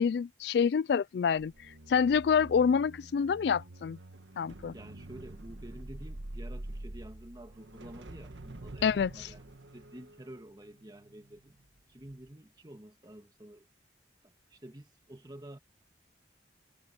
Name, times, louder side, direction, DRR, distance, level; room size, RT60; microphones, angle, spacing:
voice 1, 0.0-1.5 1.9-4.0 4.4-4.7 8.8-9.3, left 6 dB, 60° left, 0.3 m, -27 dB
sound 1, 1.3-11.7 12.0-12.3, right 1 dB, 80° right, 1.4 m, -46 dB
voice 2, 4.7-11.6 11.9-13.7 14.2-15.6, right 1 dB, 20° right, 1.6 m, -50 dB
head